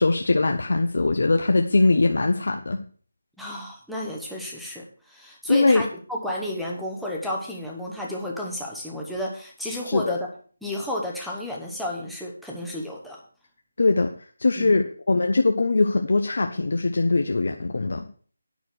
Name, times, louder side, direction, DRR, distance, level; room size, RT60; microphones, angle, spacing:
voice 1, 0.0-2.8 5.5-5.8 9.9-10.1 13.8-18.1, left 3 dB, 50° left, 5 dB, 0.8 m, -21 dB
voice 2, 3.4-10.3 10.6-13.2 14.6-14.7, left 1 dB, ahead, -4 dB, 0.8 m, -32 dB
9.3 x 6.2 x 6.4 m, 0.43 s
figure-of-eight pair, 180°, 0 cm